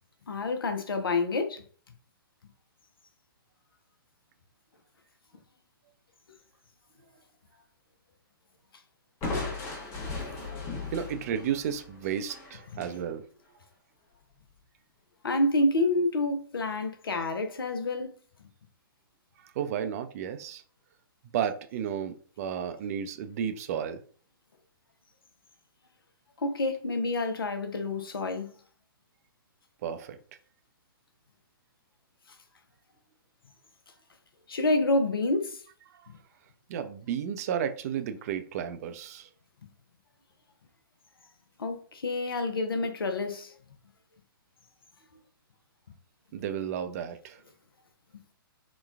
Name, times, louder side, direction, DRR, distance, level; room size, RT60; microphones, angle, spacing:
voice 1, 0.3-1.6 10.8-10.9 15.2-18.1 26.4-28.5 34.5-35.6 36.1-36.2 39.6-39.7 41.6-43.5, left 2 dB, 80° left, 0.6 m, -28 dB
Crushing, 9.2-13.0, left 3 dB, 20° left, 0.8 m, -37 dB
voice 2, 10.9-13.2 19.4-20.6 21.3-24.0 29.8-30.2 36.7-39.3 46.3-47.4, right 8 dB, 40° right, 0.4 m, -33 dB
3.9 x 2.2 x 2.3 m
figure-of-eight pair, 125°, 12 cm